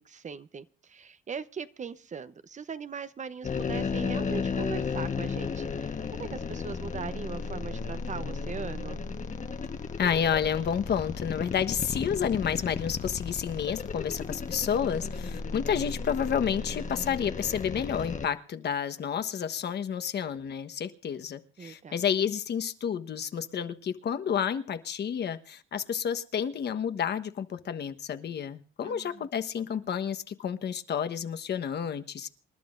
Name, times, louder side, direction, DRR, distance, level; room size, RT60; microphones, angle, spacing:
voice 1, 0.0-9.0 21.6-22.0 28.8-29.3, right 6 dB, 35° right, 0.9 m, -40 dB
sound 1, 3.4-18.3, left 5 dB, 40° left, 1.3 m, -34 dB
voice 2, 10.0-32.3, left 8 dB, 60° left, 1.2 m, -30 dB
28.0 x 11.5 x 2.6 m
cardioid pair, 90°, 20 cm